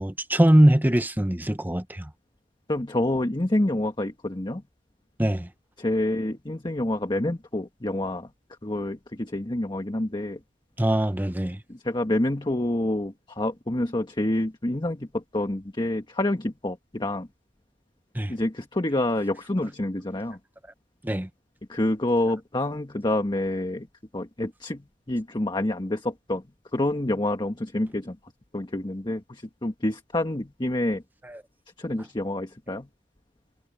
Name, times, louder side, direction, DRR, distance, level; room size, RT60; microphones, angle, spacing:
voice 1, 0.0-2.1 5.2-5.5 10.8-11.6 18.1-18.3 21.0-21.3 31.2-31.4, right 1 dB, 10° right, 0.9 m, -22 dB
voice 2, 2.7-4.6 5.8-8.3 8.6-10.4 11.7-17.3 18.3-20.4 21.7-23.9 24.1-26.4 26.7-28.2 28.5-31.0 31.8-32.9, left 1 dB, 25° left, 1.4 m, -27 dB
head